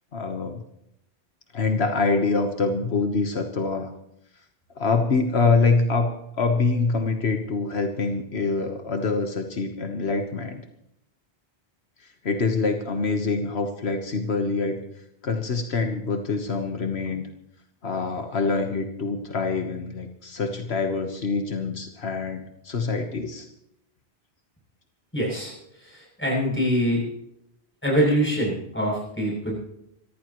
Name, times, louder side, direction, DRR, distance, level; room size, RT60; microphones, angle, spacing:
voice 1, 0.1-0.6 1.5-3.9 4.7-10.6 12.0-14.8 15.2-17.3 17.8-23.5, left 4 dB, 75° left, 5 dB, 1.5 m, -25 dB
voice 2, 25.1-25.5 25.8-27.0 27.8-29.6, equal, 10° left, -3 dB, 8.0 m, -24 dB
26.5 x 14.0 x 3.1 m, 0.79 s
omnidirectional pair, 1.1 m